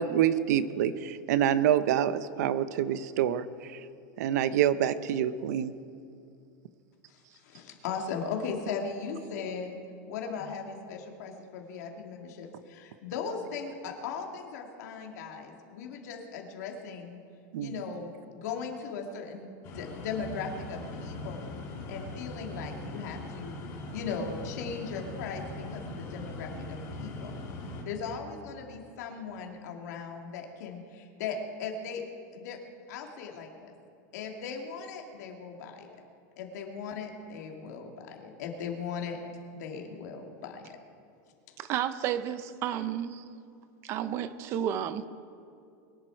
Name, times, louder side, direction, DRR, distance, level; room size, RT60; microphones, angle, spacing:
voice 1, 0.0-3.5 3.7-3.8 4.2-5.7 17.5-17.8, right 10 dB, 60° right, 14 dB, 0.7 m, -26 dB
voice 2, 7.1-9.8 10.1-17.2 17.6-21.5 21.9-23.6 23.9-27.3 27.9-32.0 32.3-32.6 32.9-33.7 34.1-35.9 36.4-39.2 39.6-40.7, left 5 dB, 60° left, 2 dB, 2.2 m, -38 dB
sound 1, 19.6-27.8, left 2 dB, 30° left, 2.3 m, -40 dB
voice 3, 41.6-43.2 43.8-45.1, right 10 dB, 25° right, 13 dB, 0.5 m, -32 dB
22.5 x 10.5 x 4.5 m, 2.5 s
supercardioid pair, 180°, 10 cm